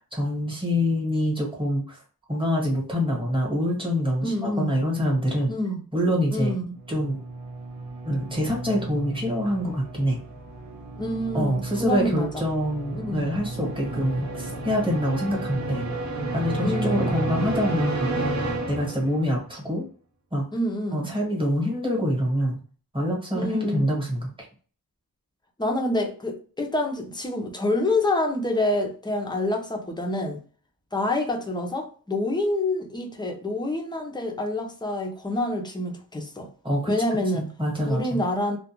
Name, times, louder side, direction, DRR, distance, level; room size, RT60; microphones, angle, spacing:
voice 1, 0.0-2.0 2.3-5.5 5.9-6.5 6.9-7.2 8.0-10.2 11.3-18.2 18.7-19.9 20.3-20.4 20.9-22.6 22.9-24.3 36.6-36.9 37.3-38.2, equal, 15° right, 1.1 m, -25 dB
voice 2, 4.2-4.7 5.5-5.8 6.3-6.6 11.0-12.4 13.0-13.3 16.6-17.0 20.5-21.1 23.3-23.9 25.6-30.4 30.9-36.5 36.9-37.4 37.9-38.6, left 1 dB, 10° left, 0.5 m, -27 dB
sound 1, 6.8-19.4, right 2 dB, 55° right, 0.6 m, -31 dB
2.3 x 2.2 x 2.9 m
wide cardioid pair, 130°, 36 cm